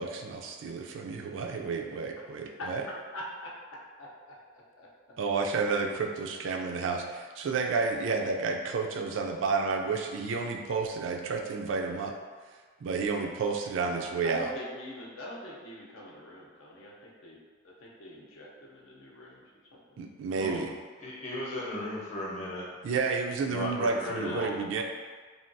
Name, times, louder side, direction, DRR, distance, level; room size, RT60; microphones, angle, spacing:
voice 1, 0.0-2.8 5.2-12.2 12.8-14.5 20.0-20.7 22.8-24.8, right 4 dB, 65° right, 3 dB, 0.3 m, -31 dB
voice 2, 3.1-3.5 4.0-4.9 14.2-17.4 17.6-19.4 19.7-19.8 24.1-24.5, equal, 80° left, -4 dB, 0.6 m, -42 dB
voice 3, 21.0-22.6 23.5-24.5, left 1 dB, 35° left, -6 dB, 0.7 m, -36 dB
3.4 x 2.3 x 2.5 m, 1.5 s
head